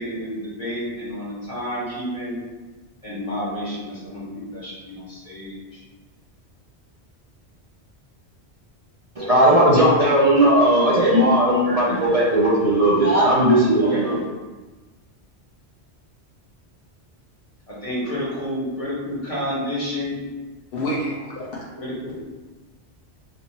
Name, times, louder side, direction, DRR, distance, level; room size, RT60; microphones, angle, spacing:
voice 1, 0.0-2.3 3.0-4.3 4.5-5.8 13.8-14.2 17.7-20.2 21.8-22.2, equal, 30° left, -9 dB, 1.6 m, -30 dB
voice 2, 9.2-14.1, right 1 dB, 40° right, -7 dB, 0.6 m, -17 dB
voice 3, 20.7-21.6, equal, 60° left, -4 dB, 0.8 m, -28 dB
4.1 x 3.0 x 2.8 m, 1.2 s
omnidirectional pair, 1.1 m